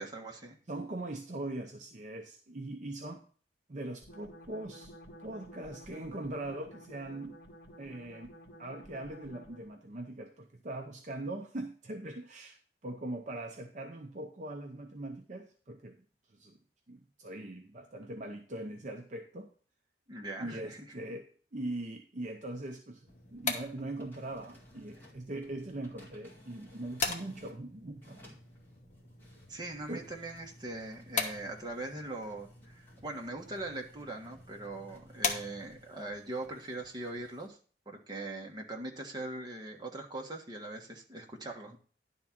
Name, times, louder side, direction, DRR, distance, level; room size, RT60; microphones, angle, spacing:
voice 1, 0.0-0.6 20.1-20.8 29.5-37.6 37.9-41.8, right 2 dB, 25° right, 1 dB, 1.2 m, -41 dB
voice 2, 0.7-3.2 3.7-4.9 5.2-7.4 7.8-8.3 8.6-16.0 16.3-16.6 16.9-19.5 20.4-28.2 29.9-30.1, right 1 dB, 45° right, 3 dB, 0.7 m, -41 dB
sound 1, 4.0-9.8, equal, 65° left, 1.6 m, -52 dB
sound 2, 23.1-36.0, left 4 dB, 45° left, 1.1 m, -41 dB
sound 3, 23.1-27.6 28.0-37.5, left 1 dB, 10° left, 2.0 m, -61 dB
10.5 x 3.7 x 5.8 m, 0.42 s
head